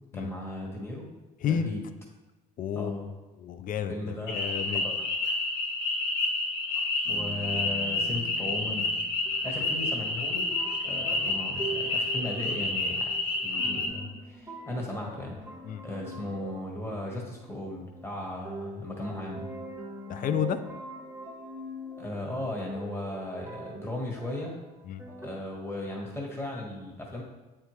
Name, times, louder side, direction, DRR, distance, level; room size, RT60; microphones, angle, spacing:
voice 1, 0.1-1.0 1.4-1.8 2.7-3.1 3.9-4.9 7.1-8.9 9.4-10.5 10.8-13.1 13.3-15.3 15.8-19.5 22.0-24.5 25.2-27.2, left 1 dB, 15° left, -1 dB, 1.6 m, -36 dB
voice 2, 2.6-3.0 3.4-4.9 15.6-15.8 20.1-20.6 24.9-25.0, left 8 dB, 50° left, 11 dB, 0.5 m, -31 dB
sound 1, 4.3-13.9, left 2 dB, 75° left, 1.1 m, -29 dB
sound 2, 7.0-25.4, right 2 dB, 10° right, 1.3 m, -43 dB
8.1 x 4.5 x 3.2 m, 1.1 s
supercardioid pair, 80°, 18 cm